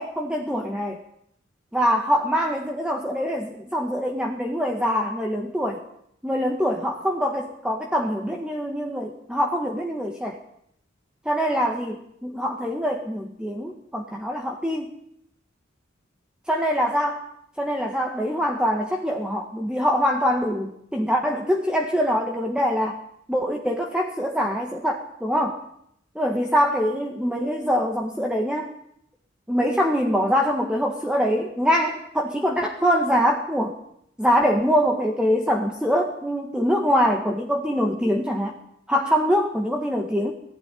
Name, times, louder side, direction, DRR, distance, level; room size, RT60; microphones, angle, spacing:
voice 1, 0.0-1.0 1.7-5.8 6.2-10.4 11.3-14.9 16.5-17.3 17.6-23.0 23.3-25.6 26.2-28.7 29.5-33.8 34.2-38.6 38.9-40.3, equal, 5° right, 1 dB, 1.8 m, -24 dB
19.0 x 15.5 x 10.0 m, 0.72 s
head